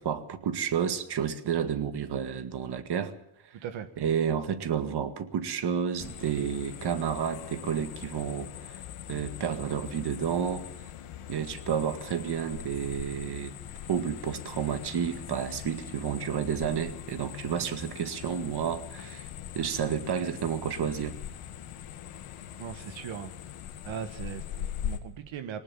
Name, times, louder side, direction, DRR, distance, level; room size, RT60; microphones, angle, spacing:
voice 1, 0.0-3.1 4.0-8.5 9.1-10.7 11.3-13.5 13.9-19.3 19.5-21.1, right 8 dB, 55° right, 9 dB, 2.0 m, -30 dB
sound 1, 6.0-25.0, left 10 dB, 80° left, 2.2 m, -41 dB
voice 2, 22.6-23.3 23.8-25.6, right 8 dB, 70° right, 9 dB, 1.6 m, -39 dB
20.0 x 18.5 x 7.2 m, 0.77 s
cardioid pair, 90°, 48 cm